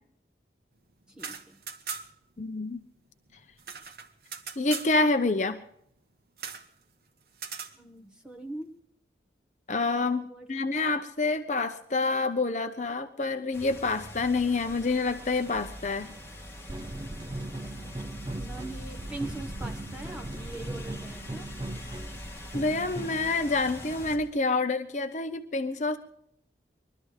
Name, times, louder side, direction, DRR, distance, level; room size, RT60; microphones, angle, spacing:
voice 1, 1.1-1.6 7.8-8.8 10.3-10.5 18.4-21.5, right 2 dB, 5° right, 3 dB, 1.4 m, -41 dB
sound 1, 1.1-2.3 2.6-2.7 2.9-4.9 6.4-6.7 7.3-7.8, right 6 dB, 55° right, 1.2 m, -39 dB
voice 2, 2.4-2.8 4.6-5.6 9.7-16.1 21.8-22.0 22.5-26.0, left 3 dB, 40° left, 8 dB, 0.7 m, -27 dB
sound 2, 13.5-24.2, left 1 dB, 15° left, 2.6 m, -43 dB
sound 3, 16.7-23.4, right 1 dB, 25° right, 0.5 m, -39 dB
21.5 x 13.0 x 4.9 m, 0.70 s
head